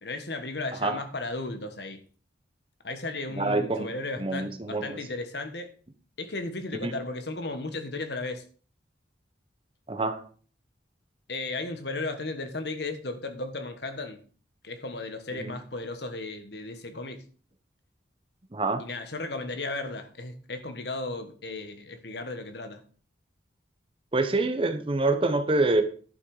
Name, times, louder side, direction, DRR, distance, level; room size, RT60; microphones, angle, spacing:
voice 1, 0.0-2.0 2.8-5.7 6.2-8.4 11.3-14.2 14.6-17.2 18.8-22.8, left 2 dB, 60° left, 1.4 m, -35 dB
voice 2, 3.3-3.9 4.2-5.0 6.8-6.9 9.9-10.2 15.4-15.5 18.5-18.8 24.1-25.8, right 2 dB, 30° right, 0.9 m, -26 dB
11.0 x 6.2 x 4.9 m
head